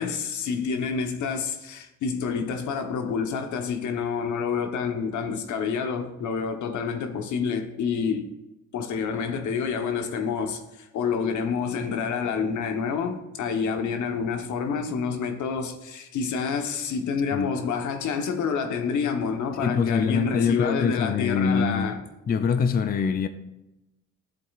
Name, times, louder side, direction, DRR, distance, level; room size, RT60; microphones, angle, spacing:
voice 1, 0.0-8.3 8.7-22.0, left 6 dB, 75° left, 1.1 m, -28 dB
voice 2, 19.6-22.0 22.3-23.3, left 6 dB, 30° left, 0.5 m, -24 dB
12.5 x 7.6 x 2.4 m
cardioid pair, 90°, 30 cm